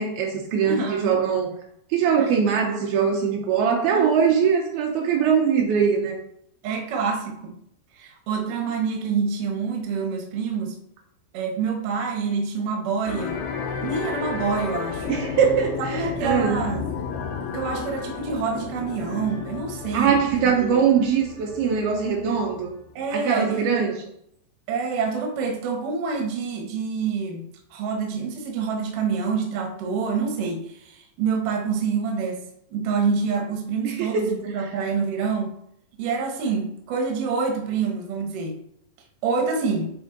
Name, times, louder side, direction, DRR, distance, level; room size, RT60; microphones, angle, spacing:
voice 1, 0.0-1.5 1.9-6.2 15.1-16.6 19.9-22.8 23.1-24.1 33.8-34.5, right 7 dB, 90° right, 1 dB, 2.2 m, -22 dB
voice 2, 0.7-1.2 2.2-2.3 3.9-4.4 6.6-7.6 7.9-10.8 11.3-13.5 13.8-15.1 15.8-16.8 17.5-20.8 23.0-23.8 24.7-27.4 27.7-32.4 32.7-35.5 36.0-38.6 39.2-39.9, right 5 dB, 70° right, 2 dB, 2.0 m, -27 dB
sound 1, 13.1-22.7, left 6 dB, 90° left, 3.8 m, -32 dB
11.5 x 4.4 x 3.9 m, 0.72 s
omnidirectional pair, 5.7 m